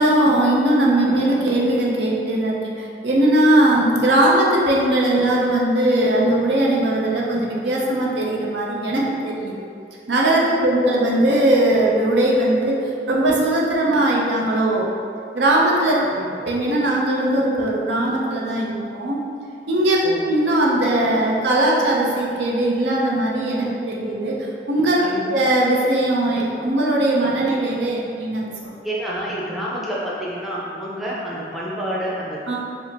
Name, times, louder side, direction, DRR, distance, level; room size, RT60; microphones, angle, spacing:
voice 1, 0.0-9.7 10.1-15.0 15.3-16.0 16.5-19.2 19.7-20.0 20.3-25.0 25.3-28.8 32.5-32.6, right 1 dB, 80° right, -3 dB, 0.6 m, -19 dB
voice 2, 28.8-32.6, equal, ahead, -7 dB, 0.5 m, -28 dB
4.9 x 2.0 x 3.3 m, 2.4 s
head